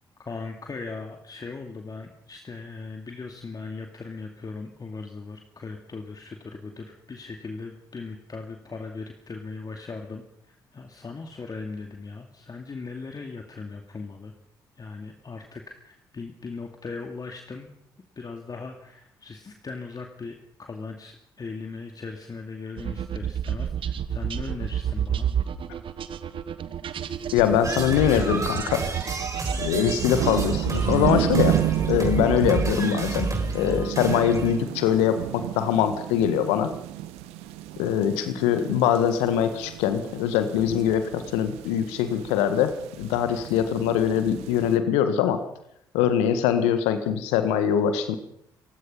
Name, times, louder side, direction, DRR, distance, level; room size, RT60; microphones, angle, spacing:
voice 1, 0.3-14.3 14.8-17.7 18.2-25.3, left 4 dB, 35° left, 3 dB, 2.5 m, -38 dB
sound 1, 22.8-32.9, right 9 dB, 50° right, 1.3 m, -30 dB
voice 2, 27.3-28.9 29.6-31.6 31.9-36.8 37.8-45.4 45.9-48.2, left 9 dB, 70° left, 10 dB, 1.6 m, -23 dB
sound 2, 27.6-34.6, right 3 dB, 30° right, 6.0 m, -31 dB
sound 3, 27.7-28.0 28.4-28.7 29.0-44.8, right 14 dB, 70° right, 1.4 m, -32 dB
29.5 x 16.5 x 5.6 m, 0.74 s
figure-of-eight pair, 45°, 11 cm